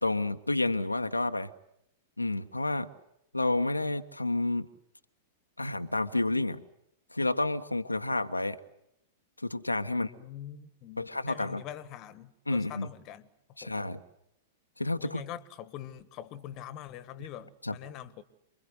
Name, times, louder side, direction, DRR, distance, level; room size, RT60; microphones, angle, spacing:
voice 1, 0.0-1.5 2.2-2.9 3.3-4.7 5.6-6.7 7.1-8.6 9.4-10.1 11.0-11.6 12.5-12.9 13.6-14.0 14.8-15.2 17.6-17.8, left 2 dB, 85° left, 1.0 m, -30 dB
voice 2, 9.9-13.3 13.6-13.9 15.0-18.2, left 11 dB, 35° left, 1.5 m, -44 dB
28.0 x 22.5 x 8.0 m
figure-of-eight pair, 100°, 0 cm